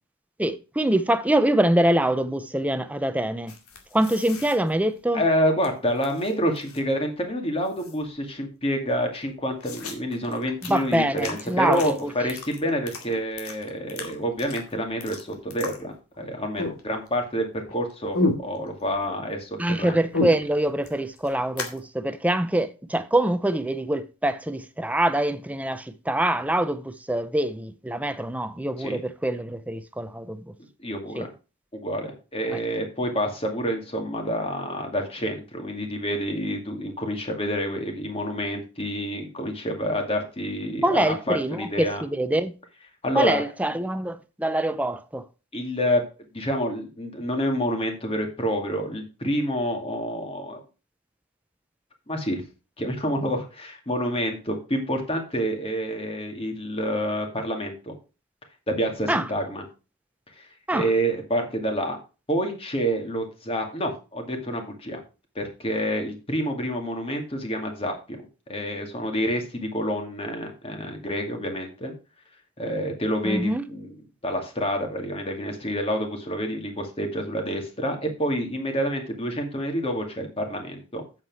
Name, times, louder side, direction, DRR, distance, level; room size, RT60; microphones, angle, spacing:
voice 1, 0.4-3.5 3.9-5.2 10.6-12.1 19.6-30.5 31.2-31.3 32.5-32.6 40.8-42.5 43.1-45.3 59.1-59.3 60.7-60.9 73.2-73.6, right 1 dB, 5° right, 0.6 m, -24 dB
sound 1, 3.5-5.7 6.0-7.0 7.3-7.4 7.6-8.3 8.7-8.8 9.1-16.3 16.6-17.3 17.6-19.1 19.4-21.8, left 2 dB, 80° left, 2.2 m, -33 dB
voice 2, 5.1-20.0 28.8-29.0 30.8-31.3 31.7-42.0 43.0-43.4 45.5-46.0 46.3-50.6 52.1-52.4 52.8-58.0 58.7-59.6 60.4-60.5 60.7-62.0 62.3-65.0 65.4-68.2 68.5-71.9 72.6-73.9 74.2-81.0, equal, 25° left, 2.2 m, -28 dB
8.5 x 7.6 x 4.7 m
head